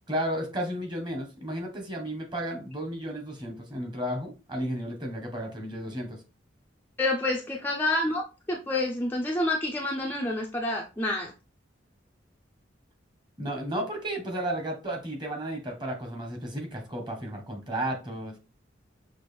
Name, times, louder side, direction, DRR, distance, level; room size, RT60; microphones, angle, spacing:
voice 1, 0.1-6.2 13.4-18.4, right 1 dB, 25° right, 2 dB, 1.2 m, -33 dB
voice 2, 7.0-11.3, left 2 dB, 10° left, 0 dB, 0.4 m, -28 dB
6.0 x 2.5 x 3.3 m, 0.31 s
head